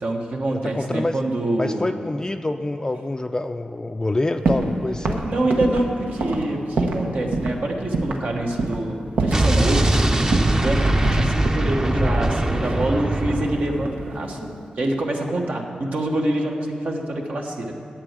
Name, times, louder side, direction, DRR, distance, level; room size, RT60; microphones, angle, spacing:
voice 1, 0.0-1.9 5.0-14.5 14.8-17.7, right 1 dB, 65° right, 1 dB, 1.3 m, -26 dB
voice 2, 0.5-1.2 1.6-5.2 11.9-12.2, left 2 dB, 25° left, 7 dB, 0.4 m, -26 dB
sound 1, 4.4-4.7 5.0-7.1 7.3-7.6 7.9-8.3 8.6-8.9 9.2-10.0 10.3-11.7 12.6-13.5 13.8-14.3, right 3 dB, 90° right, 1.0 m, -25 dB
Explosion, 9.3-14.1, right 1 dB, 25° right, 0.7 m, -21 dB
8.8 x 8.4 x 7.4 m, 2.5 s
cardioid pair, 65°, 3 cm